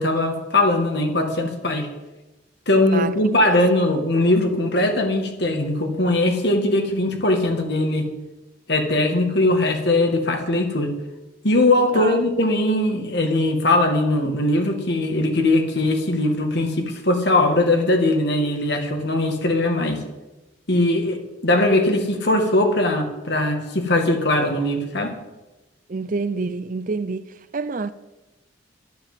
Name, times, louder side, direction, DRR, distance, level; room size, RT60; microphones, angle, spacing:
voice 1, 0.0-1.9 2.7-8.1 8.7-10.9 11.4-20.0 20.7-25.2, left 2 dB, 55° left, 2.2 m, -20 dB
voice 2, 2.9-3.6 11.9-12.2 25.9-27.9, right 4 dB, 40° right, 0.5 m, -28 dB
11.5 x 10.5 x 7.5 m
head